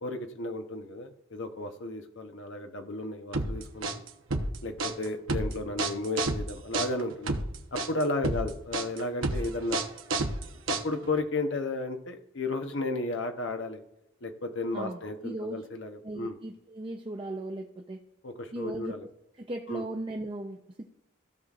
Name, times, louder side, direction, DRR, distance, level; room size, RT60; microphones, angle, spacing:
voice 1, 0.0-4.0 4.6-7.3 7.7-9.8 10.7-13.8 14.2-16.4 18.2-19.1 19.7-19.8, left 2 dB, 65° left, 5 dB, 0.9 m, -33 dB
sound 1, 3.3-11.2, right 2 dB, 80° right, 0.9 m, -30 dB
voice 2, 14.7-15.6 16.0-18.0 18.5-19.1 19.4-20.9, right 1 dB, 25° right, 2 dB, 0.6 m, -37 dB
16.0 x 5.7 x 2.5 m, 0.86 s
head